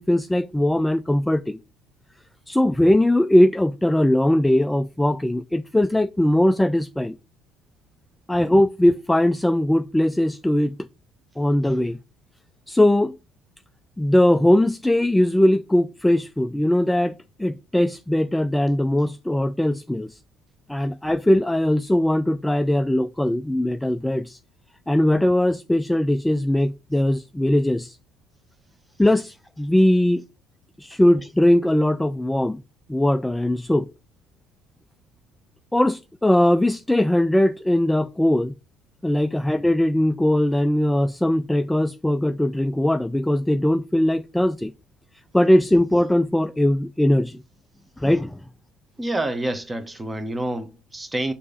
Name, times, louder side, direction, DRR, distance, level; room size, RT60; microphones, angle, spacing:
voice 1, 0.0-1.6 2.5-7.2 8.3-10.8 11.4-12.0 12.7-13.2 14.0-20.2 20.7-24.4 24.9-28.0 29.0-30.2 30.8-32.6 32.9-33.9 35.7-38.5 39.0-44.7 45.3-47.4 48.0-48.4, left 1 dB, 5° left, 0.3 m, -20 dB
voice 2, 49.0-51.3, right 1 dB, 15° right, 1.0 m, -28 dB
6.4 x 2.8 x 5.2 m
figure-of-eight pair, 55°, 0 cm